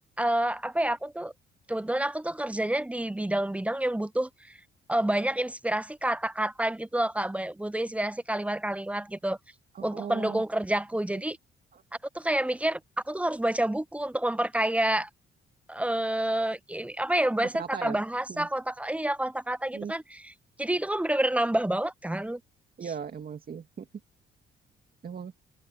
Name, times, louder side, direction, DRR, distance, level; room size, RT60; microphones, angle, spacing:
voice 1, 0.2-1.3 1.7-4.6 4.9-9.4 9.8-11.4 12.1-12.8 13.1-15.1 15.7-20.3 20.6-22.4, right 1 dB, 5° right, 0.6 m, -28 dB
voice 2, 9.7-10.4 11.1-11.2 11.7-11.8 17.4-18.0 18.3-18.5 19.7-19.9 22.8-23.9 25.0-25.3, right 7 dB, 45° right, 2.4 m, -38 dB
cardioid pair, 90°, 20 cm